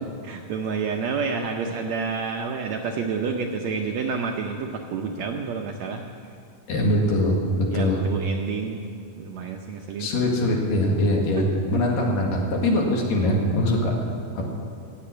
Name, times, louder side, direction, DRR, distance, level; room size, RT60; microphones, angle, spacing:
voice 1, 0.0-6.1 7.7-8.8 9.2-10.1 11.3-11.8, right 5 dB, 75° right, 2 dB, 1.7 m, -29 dB
voice 2, 6.7-8.0 10.0-11.5 11.7-14.0 14.4-14.5, left 1 dB, 80° left, -1 dB, 3.6 m, -22 dB
15.5 x 7.5 x 9.0 m, 2.3 s
omnidirectional pair, 3.9 m